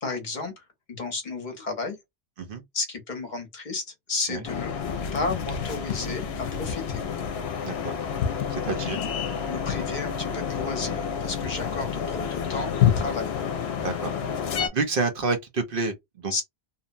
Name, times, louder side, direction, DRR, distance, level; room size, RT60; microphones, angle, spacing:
voice 1, 0.0-2.0 2.7-4.7 5.1-7.0 8.9-9.1 9.5-13.3 16.3-16.4, left 3 dB, 50° left, 0.9 m, -33 dB
sound 1, 4.4-14.7, left 8 dB, 75° left, 0.8 m, -28 dB
voice 2, 8.5-9.0 9.6-9.8 13.8-14.1 14.7-16.4, right 3 dB, 60° right, 0.8 m, -29 dB
2.8 x 2.1 x 2.5 m
omnidirectional pair, 1.1 m